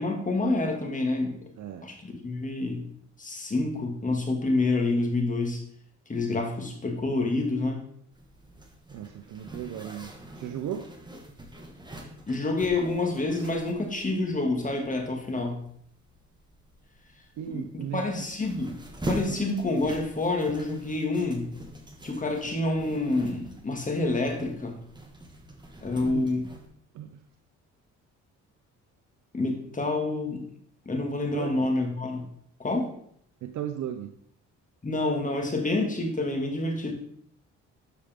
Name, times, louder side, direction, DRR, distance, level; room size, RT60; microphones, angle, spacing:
voice 1, 0.0-1.4 1.8-2.9 3.2-5.6 6.1-7.8 12.3-15.6 17.5-18.8 19.1-21.5 22.0-24.8 25.8-26.5 29.3-30.5 30.9-32.2 32.6-32.9 34.8-36.9, left 2 dB, 25° left, 2 dB, 2.2 m, -28 dB
Zipper (clothing), 8.1-26.7, right 1 dB, 15° right, 1.7 m, -43 dB
voice 2, 8.9-10.9 17.4-18.0 19.3-19.5 26.0-26.4 26.9-27.2 31.3-31.7 33.4-34.1, right 10 dB, 75° right, 6 dB, 0.7 m, -36 dB
12.5 x 5.0 x 3.7 m, 0.66 s
cardioid pair, 90°, 30 cm